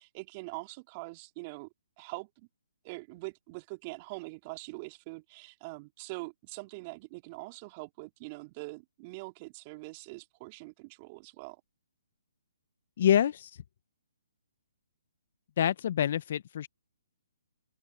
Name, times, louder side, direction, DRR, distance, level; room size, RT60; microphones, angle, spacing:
voice 1, 0.0-1.7 2.0-2.5 2.8-11.6, right 26 dB, 30° right, 3.3 m, -43 dB
voice 2, 13.0-13.5 15.6-16.7, left 10 dB, 50° left, 0.8 m, -26 dB
open air
hypercardioid pair, 140°, 0 cm